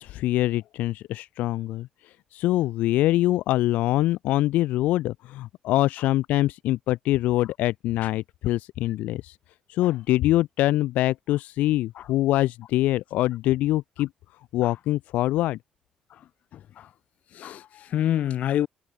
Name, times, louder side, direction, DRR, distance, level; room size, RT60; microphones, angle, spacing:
voice 1, 0.0-9.4 9.7-14.1 14.5-15.6, left 16 dB, 90° left, 4.3 m, -24 dB
voice 2, 16.1-16.9 17.3-18.7, left 11 dB, 70° left, 7.1 m, -29 dB
cardioid pair, 90°, 3 cm